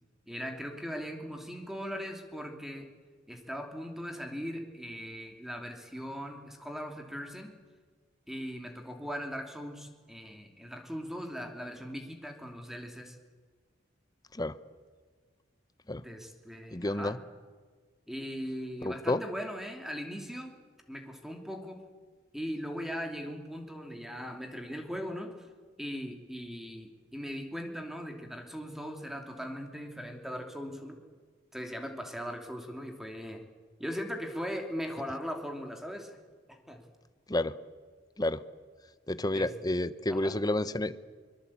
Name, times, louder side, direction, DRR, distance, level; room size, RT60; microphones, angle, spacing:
voice 1, 0.3-2.9 3.3-7.5 8.3-13.2 16.0-17.2 18.1-20.5 20.9-21.8 22.3-25.5 25.8-31.0 31.5-33.4 33.8-36.2 36.5-36.8 39.3-39.5 40.1-40.4, equal, ahead, 4 dB, 2.8 m, -39 dB
voice 2, 16.7-17.2 18.8-19.2 37.3-37.5 38.2-38.4 39.1-41.0, left 1 dB, 20° left, 14 dB, 0.9 m, -30 dB
24.0 x 23.0 x 8.6 m, 1.5 s
head